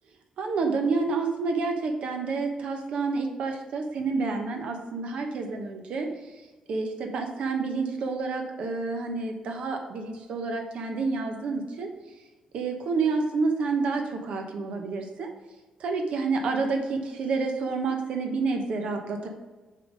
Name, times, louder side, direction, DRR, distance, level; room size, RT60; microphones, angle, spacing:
voice 1, 0.4-6.1 6.7-11.9 12.5-15.3 15.8-19.3, right 4 dB, 65° right, 3 dB, 1.0 m, -29 dB
6.8 x 3.9 x 4.9 m, 1.2 s
cardioid pair, 130°, 2 cm